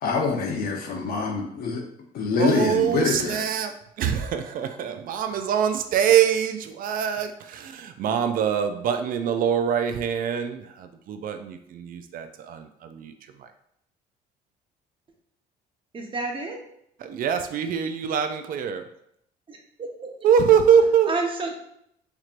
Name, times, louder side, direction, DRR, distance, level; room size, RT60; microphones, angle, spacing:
voice 1, 0.0-1.8 2.1-3.4, left 4 dB, 65° left, 2 dB, 0.8 m, -25 dB
voice 2, 2.4-13.5 17.0-18.9 20.2-21.1, right 8 dB, 55° right, 8 dB, 0.4 m, -24 dB
voice 3, 15.9-16.6 19.5-20.1 21.1-21.5, right 3 dB, 30° right, 1 dB, 0.8 m, -30 dB
4.5 x 2.8 x 2.5 m, 0.72 s
cardioid pair, 110°, 17 cm